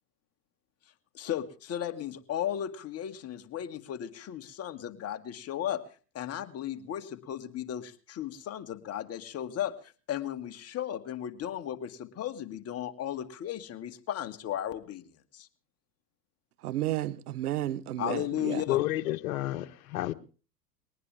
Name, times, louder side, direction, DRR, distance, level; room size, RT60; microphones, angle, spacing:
voice 1, 1.1-5.8 6.1-9.7 10.1-15.5 18.0-18.8, left 11 dB, 30° left, 2.1 m, -35 dB
voice 2, 16.6-18.6, right 13 dB, 70° right, 1.2 m, -32 dB
voice 3, 18.7-20.1, left 15 dB, 60° left, 1.5 m, -30 dB
21.5 x 19.0 x 3.5 m
hypercardioid pair, 95°, 48 cm